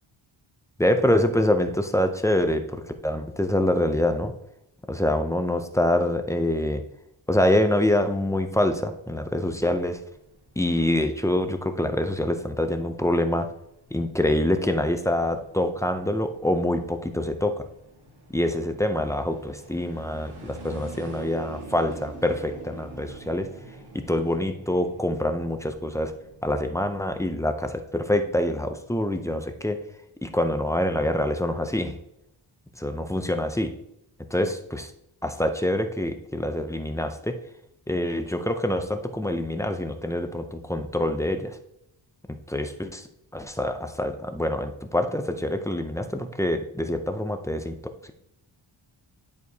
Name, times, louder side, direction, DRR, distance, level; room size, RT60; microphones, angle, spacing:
voice 1, 0.8-4.3 4.9-6.8 7.3-10.0 10.6-13.5 13.9-17.6 18.3-23.5 23.9-26.1 26.4-29.8 30.2-32.0 32.8-33.7 34.3-34.9 35.2-37.4 37.9-41.6 42.5-43.0 43.3-47.7, left 1 dB, 5° left, 7 dB, 0.4 m, -25 dB
sound 1, 8.5-26.9, right 2 dB, 50° right, 1.6 m, -46 dB
10.5 x 4.6 x 2.7 m, 0.79 s
wide cardioid pair, 160°, 49 cm